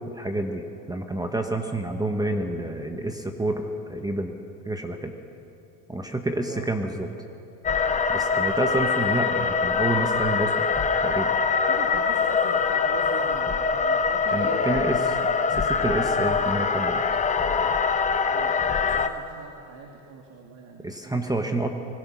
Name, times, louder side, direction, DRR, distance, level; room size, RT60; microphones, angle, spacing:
voice 1, 0.1-4.3 4.7-5.1 5.9-7.1 8.1-10.7 11.0-11.3 14.3-15.0 15.6-17.1 20.8-21.7, right 2 dB, 10° right, 5 dB, 1.0 m, -28 dB
sound 1, 7.6-19.1, left 5 dB, 15° left, 0.7 m, -23 dB
voice 2, 11.6-15.0 18.3-21.7, right 5 dB, 65° right, 1 dB, 2.5 m, -42 dB
24.5 x 21.0 x 6.1 m, 2.8 s
cardioid pair, 135°, 46 cm